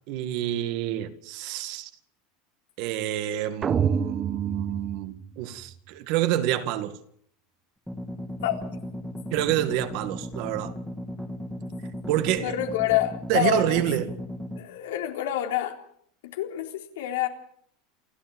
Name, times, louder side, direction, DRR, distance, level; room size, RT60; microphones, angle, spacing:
voice 1, 0.1-1.9 2.8-6.9 9.3-10.7 12.1-12.5 13.3-14.2, right 12 dB, 55° right, 2.0 m, -27 dB
sound 1, 3.6-5.7, right 7 dB, 25° right, 1.1 m, -28 dB
sound 2, 7.9-14.6, equal, ahead, 2.3 m, -36 dB
voice 2, 12.4-13.8 14.6-15.7 16.3-16.7 17.0-17.3, left 13 dB, 90° left, 3.7 m, -27 dB
28.0 x 13.0 x 7.6 m
supercardioid pair, 145°, 0 cm